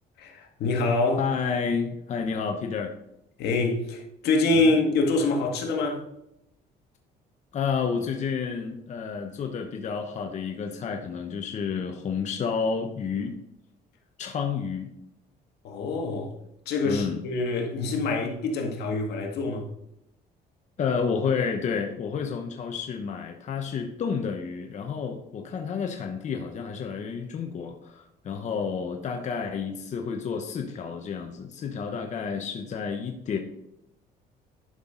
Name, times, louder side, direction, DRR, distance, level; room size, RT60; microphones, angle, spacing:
voice 1, 0.2-1.2 3.4-6.0 15.6-16.3 16.7-19.7, left 3 dB, 75° left, 1.8 m, -25 dB
voice 2, 1.2-2.9 4.6-4.7 7.5-13.4 14.2-14.9 16.8-17.2 20.8-33.4, left 6 dB, 45° left, 0.9 m, -30 dB
11.0 x 5.9 x 3.8 m
cardioid pair, 110°, 17 cm